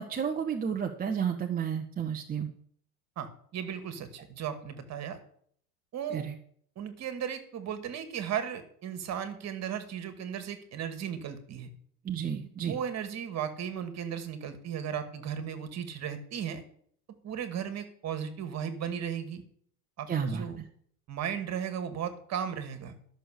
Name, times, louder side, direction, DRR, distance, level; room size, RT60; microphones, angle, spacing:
voice 1, 0.0-2.5 6.1-6.3 12.0-12.8 20.1-20.6, right 7 dB, 20° right, 3 dB, 1.0 m, -32 dB
voice 2, 3.2-5.2 5.9-6.3 6.8-11.7 12.6-16.6 17.2-19.4 20.0-20.6 21.1-22.9, right 8 dB, 35° right, 9 dB, 2.2 m, -36 dB
12.5 x 6.7 x 6.6 m, 0.62 s
hypercardioid pair, 95°, 43 cm